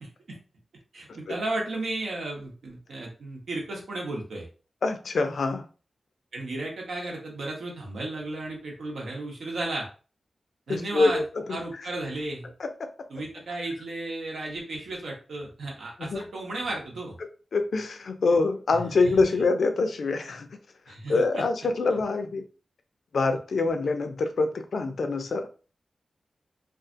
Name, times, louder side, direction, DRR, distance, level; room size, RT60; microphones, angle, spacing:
voice 1, 0.9-4.5 6.3-9.9 10.7-11.2 11.5-12.5 13.1-17.2 18.7-18.8 20.9-21.5, right 2 dB, 90° right, 0.9 m, -34 dB
voice 2, 4.8-5.7 10.7-11.2 12.6-12.9 16.0-16.2 17.2-20.5 21.1-22.4 23.1-25.5, left 3 dB, 75° left, 0.4 m, -25 dB
2.5 x 2.4 x 2.5 m
wide cardioid pair, 95°, 0 cm